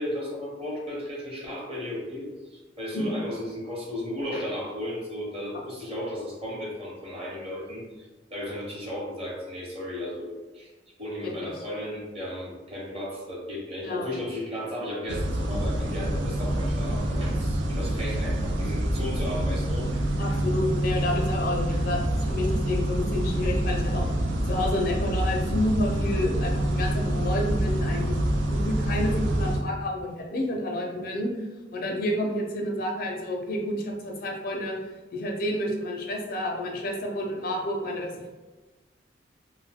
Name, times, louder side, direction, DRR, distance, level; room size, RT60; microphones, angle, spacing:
voice 1, 0.0-10.7 11.0-20.4, left 1 dB, 35° right, -4 dB, 0.9 m, -35 dB
sound 1, 15.1-29.6, right 1 dB, 85° right, 0.4 m, -26 dB
voice 2, 20.2-24.0 24.5-28.2 28.5-31.3 31.7-38.3, left 1 dB, 55° left, 1 dB, 0.4 m, -29 dB
2.6 x 2.1 x 3.4 m, 1.2 s
head